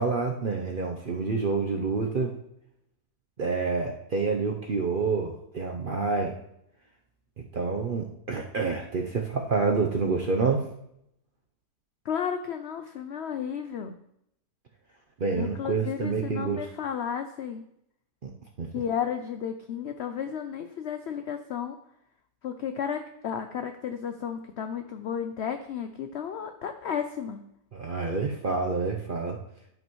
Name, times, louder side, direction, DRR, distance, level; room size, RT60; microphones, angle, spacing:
voice 1, 0.0-2.3 3.4-6.3 7.4-10.7 15.2-16.7 18.2-18.3 18.6-18.7 27.7-29.4, right 4 dB, 55° right, 1 dB, 0.6 m, -28 dB
voice 2, 12.1-14.0 15.4-17.6 18.7-21.8 22.4-27.4, left 8 dB, 85° left, 7 dB, 0.6 m, -33 dB
12.0 x 5.3 x 3.0 m, 0.77 s
omnidirectional pair, 1.7 m